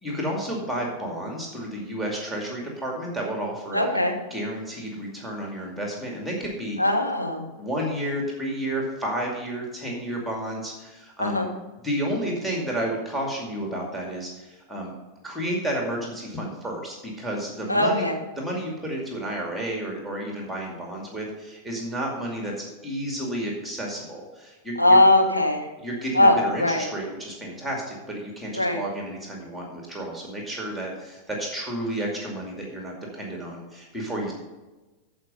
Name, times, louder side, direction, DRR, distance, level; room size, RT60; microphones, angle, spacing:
voice 1, 0.0-3.9 4.3-6.8 7.6-11.5 11.8-14.9 15.2-18.1 18.4-25.0 25.8-34.3, right 1 dB, ahead, -1 dB, 2.3 m, -31 dB
voice 2, 3.7-4.2 6.8-7.4 11.2-11.5 17.7-18.2 24.8-25.7 26.1-26.9 28.5-28.8, left 1 dB, 90° left, 1 dB, 1.4 m, -20 dB
13.5 x 5.1 x 5.4 m, 1.2 s
figure-of-eight pair, 90°, 0 cm